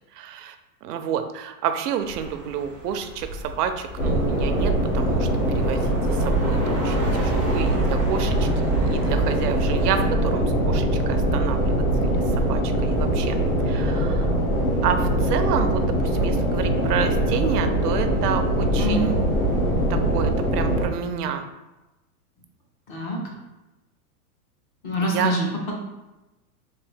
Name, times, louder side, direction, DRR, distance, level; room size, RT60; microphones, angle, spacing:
voice 1, 0.1-13.4 13.7-14.3 14.8-19.3 19.9-21.5 25.0-25.4, right 8 dB, 85° right, 8 dB, 0.6 m, -29 dB
sound 1, 2.0-10.1, right 1 dB, 15° right, 0.3 m, -36 dB
sound 2, 4.0-20.8, right 1 dB, 65° left, 1.3 m, -22 dB
voice 2, 18.7-19.1 22.9-23.2 24.8-25.7, equal, 35° left, -1 dB, 0.8 m, -25 dB
3.7 x 2.8 x 3.3 m, 1.0 s
supercardioid pair, 160°, 46 cm